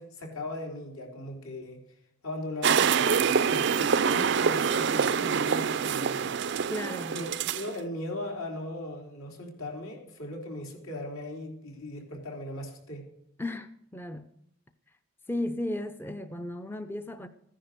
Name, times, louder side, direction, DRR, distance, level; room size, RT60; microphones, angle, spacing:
voice 1, 0.0-1.8 2.2-6.3 7.1-13.0, left 1 dB, 80° left, 3.6 m, -38 dB
sound 1, 2.6-7.7, right 6 dB, 55° right, 0.4 m, -25 dB
voice 2, 6.7-7.2 13.4-14.3 15.3-17.3, left 1 dB, 10° left, 0.5 m, -35 dB
14.5 x 10.0 x 6.6 m
head